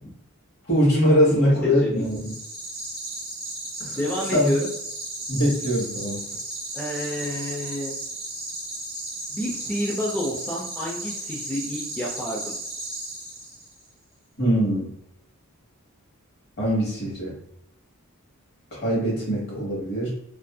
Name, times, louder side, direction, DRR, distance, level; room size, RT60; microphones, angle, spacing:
voice 1, 0.7-2.3 3.8-4.0 4.3-4.5 5.3-6.2 14.4-14.9 16.6-17.3 18.7-20.1, equal, 45° left, -5 dB, 1.2 m, -22 dB
voice 2, 1.6-2.0 3.9-4.7 6.7-8.0 9.3-12.5, equal, 10° left, -6 dB, 0.3 m, -29 dB
sound 1, 2.0-13.8, right 2 dB, 25° right, 0.9 m, -35 dB
2.6 x 2.4 x 2.2 m, 0.78 s
head